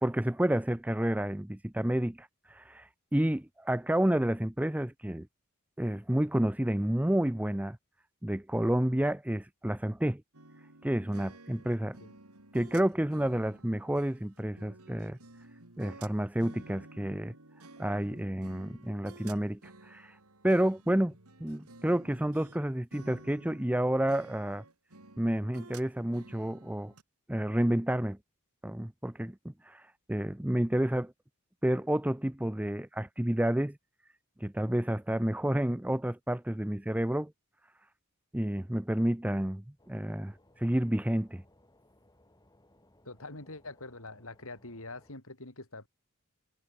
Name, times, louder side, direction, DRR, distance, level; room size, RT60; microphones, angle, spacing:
voice 1, 0.0-5.3 5.8-7.8 8.2-10.2 10.8-12.0 12.5-15.2 15.8-17.3 17.8-20.2 20.4-21.1 21.4-24.6 25.2-26.9 27.3-28.2 28.6-29.4 29.6-31.1 31.6-33.8 34.4-37.3 38.3-41.4, right 1 dB, 5° right, 0.6 m, -30 dB
sound 1, 10.3-22.6 22.9-27.0, right 2 dB, 80° right, 3.7 m, -53 dB
voice 2, 11.8-12.1 43.0-45.9, left 2 dB, 65° left, 5.8 m, -45 dB
sound 2, 39.8-45.1, left 1 dB, 20° left, 7.3 m, -64 dB
head